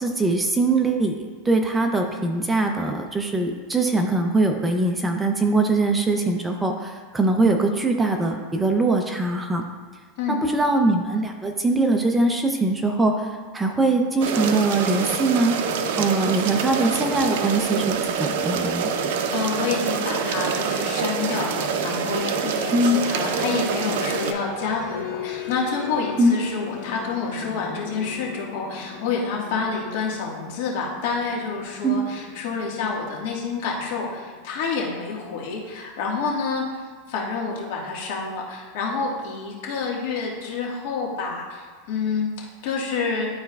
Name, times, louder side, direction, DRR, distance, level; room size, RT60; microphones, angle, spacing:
voice 1, 0.0-9.6 10.3-13.3 13.5-15.6 16.0-18.9 22.7-23.0 26.2-26.4 31.8-32.0, right 2 dB, 10° right, 4 dB, 0.5 m, -22 dB
sound 1, 14.2-24.3, right 6 dB, 70° right, 0.5 m, -26 dB
voice 2, 19.3-36.8 37.1-43.3, left 4 dB, 65° left, -2 dB, 1.5 m, -28 dB
sound 2, 23.0-35.5, left 8 dB, 85° left, 1.0 m, -39 dB
11.0 x 4.3 x 2.3 m, 1.5 s
supercardioid pair, 145°, 0 cm